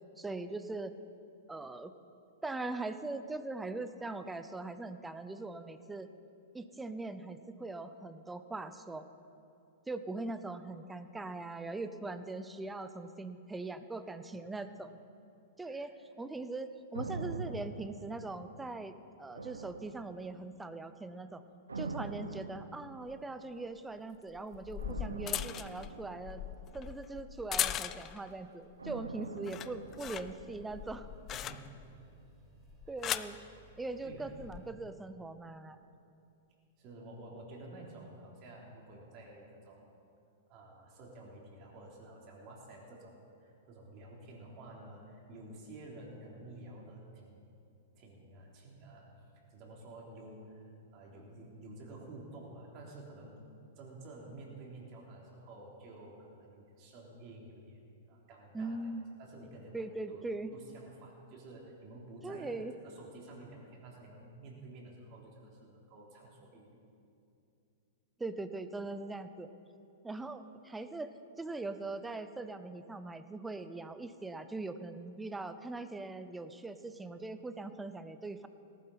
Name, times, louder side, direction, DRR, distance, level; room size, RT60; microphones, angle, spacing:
voice 1, 0.2-0.9 1.5-1.9 2.4-6.1 6.5-9.1 9.9-15.0 15.6-21.4 21.8-26.4 26.7-31.1 32.9-33.4 33.8-35.8 58.5-59.1 59.7-60.5 62.2-62.7 68.2-69.5 70.0-78.5, right 3 dB, 10° right, 11 dB, 0.7 m, -41 dB
sound 1, 16.9-18.9 19.4-20.6 21.7-23.4 24.8-27.2 28.8-31.0 31.3-31.4, right 3 dB, 85° right, 0.6 m, -44 dB
sound 2, 23.1-23.2 24.3-28.3 28.7-29.1 29.4-31.9 32.7-33.4 34.3-34.6, left 11 dB, 30° left, 0.4 m, -39 dB
sound 3, 29.5-34.7, right 2 dB, 25° right, 3.1 m, -61 dB
voice 2, 34.0-34.4 34.7-34.8 36.8-39.9 40.5-47.4 47.9-49.1 49.5-53.4 53.8-57.8 58.1-58.8 59.2-60.2 60.5-62.5 62.8-66.7, right 2 dB, 40° right, -2 dB, 3.4 m, -51 dB
18.5 x 11.5 x 4.2 m, 2.6 s
figure-of-eight pair, 105°, 0 cm